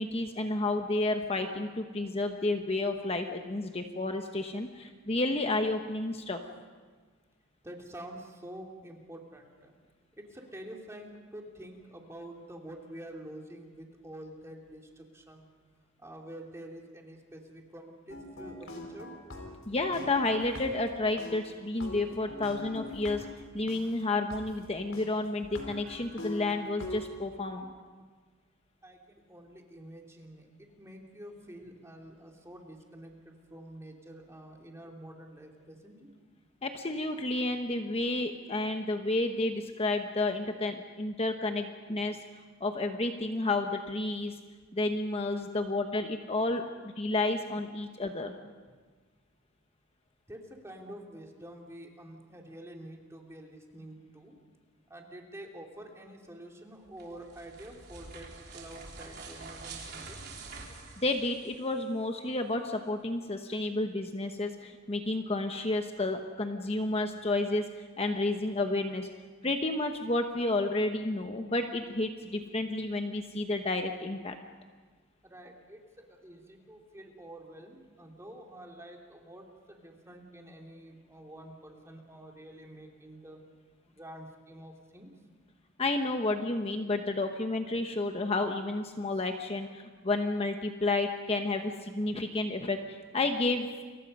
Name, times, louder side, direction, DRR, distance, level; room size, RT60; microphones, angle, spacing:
voice 1, 0.0-6.4 19.7-23.2 23.5-27.7 36.6-42.2 42.6-44.3 44.7-48.3 61.0-67.6 68.0-69.1 69.4-74.4 85.8-93.7, left 2 dB, 30° left, 5 dB, 1.1 m, -31 dB
voice 2, 7.6-9.7 10.2-15.5 16.0-19.1 28.8-36.1 50.3-54.4 54.9-58.3 58.5-60.2 75.2-83.4 83.9-85.1, right 1 dB, 15° right, 1 dB, 2.8 m, -48 dB
sound 1, 18.1-20.9 21.2-23.8 24.3-24.4 24.9-25.0 25.4-27.0, left 1 dB, 75° left, 4.3 m, -43 dB
sound 2, 56.8-61.8, right 4 dB, 55° right, 4.1 m, -46 dB
29.5 x 23.5 x 5.4 m, 1.5 s
head